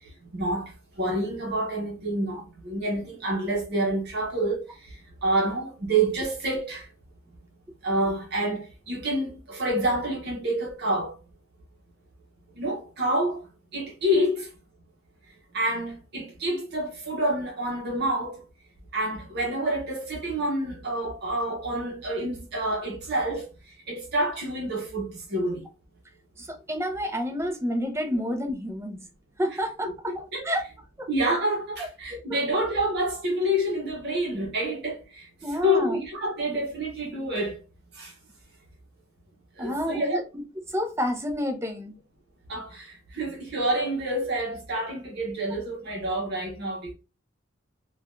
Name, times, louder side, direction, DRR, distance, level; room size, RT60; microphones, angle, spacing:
voice 1, 0.3-0.7 1.0-6.9 7.8-11.1 12.6-13.5 13.7-14.5 15.5-18.4 18.9-23.5 23.9-25.6 30.1-30.5 31.1-37.6 37.9-38.1 39.6-40.2 42.5-46.9, right 1 dB, 55° right, 0.8 m, -28 dB
voice 2, 26.4-29.0 29.4-30.6 31.0-31.1 32.1-32.4 35.4-36.0 39.6-41.9, equal, 15° right, 0.6 m, -30 dB
3.2 x 2.2 x 2.4 m
head